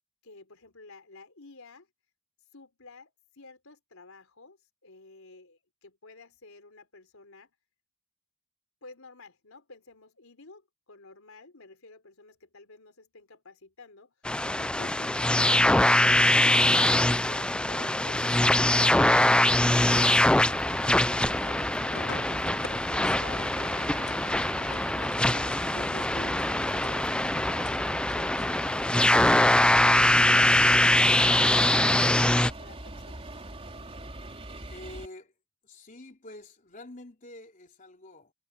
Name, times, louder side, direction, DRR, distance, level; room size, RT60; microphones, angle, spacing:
voice 1, 0.2-1.9 2.5-4.6 4.8-7.5 8.8-14.1 14.5-16.6 17.0-19.6 19.9-25.1 25.7-28.6 29.1-33.3, left 3 dB, 85° left, 3.9 m, -50 dB
sound 1, 14.3-32.5, left 1 dB, 5° left, 0.4 m, -23 dB
sound 2, 19.5-35.1, right 1 dB, 30° right, 3.5 m, -42 dB
sound 3, 21.3-30.4, left 4 dB, 60° left, 2.4 m, -48 dB
voice 2, 34.7-35.3 35.6-38.3, left 1 dB, 40° left, 3.8 m, -47 dB
head